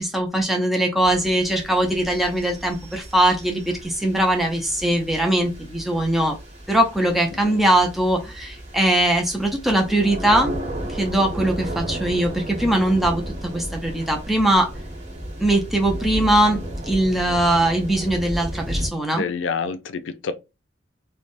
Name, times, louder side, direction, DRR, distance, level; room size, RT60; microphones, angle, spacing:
voice 1, 0.0-6.4 6.7-10.6 10.9-14.7 15.4-19.2, right 1 dB, ahead, 0.4 m, -21 dB
sound 1, 1.0-18.9, equal, 35° right, 1.0 m, -34 dB
voice 2, 19.1-20.3, left 5 dB, 80° left, 0.4 m, -28 dB
3.2 x 2.1 x 2.5 m
head